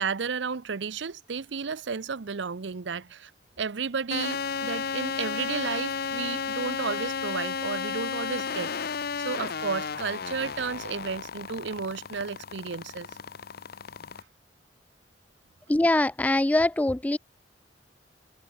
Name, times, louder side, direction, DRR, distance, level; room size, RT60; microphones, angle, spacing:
voice 1, 0.0-3.3 3.6-13.1, right 5 dB, 70° right, 0.7 m, -33 dB
sound 1, 4.1-14.2, left 6 dB, 55° left, 0.8 m, -33 dB
voice 2, 15.7-17.2, left 1 dB, 10° left, 0.3 m, -23 dB
head